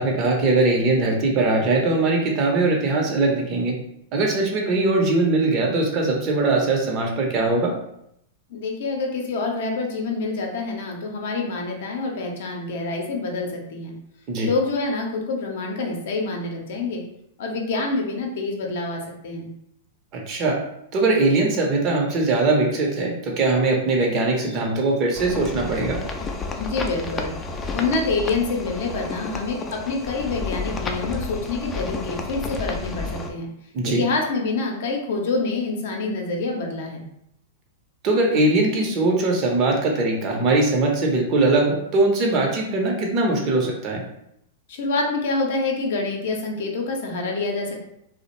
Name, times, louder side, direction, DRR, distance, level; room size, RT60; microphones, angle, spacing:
voice 1, 0.0-3.7 4.1-7.7 14.3-14.5 20.1-20.6 20.9-26.0 33.7-34.0 38.0-44.0, right 2 dB, 40° right, 1 dB, 0.6 m, -21 dB
voice 2, 8.5-13.9 14.4-17.0 17.4-19.5 26.6-27.3 27.7-33.5 33.8-37.0 44.7-47.9, left 3 dB, 65° left, 1 dB, 0.6 m, -26 dB
sound 1, 25.1-33.3, left 3 dB, 20° left, 0.3 m, -31 dB
2.4 x 2.0 x 2.9 m, 0.77 s
hypercardioid pair, 105°, 0 cm